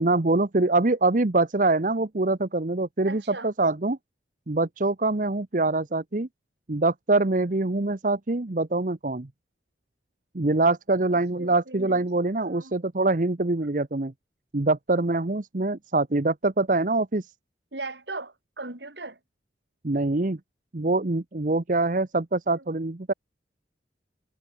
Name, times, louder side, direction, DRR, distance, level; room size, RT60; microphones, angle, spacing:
voice 1, 0.0-4.0 4.5-6.3 6.7-9.3 10.3-14.1 14.5-17.3 19.8-20.4 20.7-23.1, right 2 dB, 45° right, 0.9 m, -24 dB
voice 2, 3.1-3.5 11.4-12.8 17.7-19.2 22.5-22.7, right 3 dB, 70° right, 4.3 m, -39 dB
head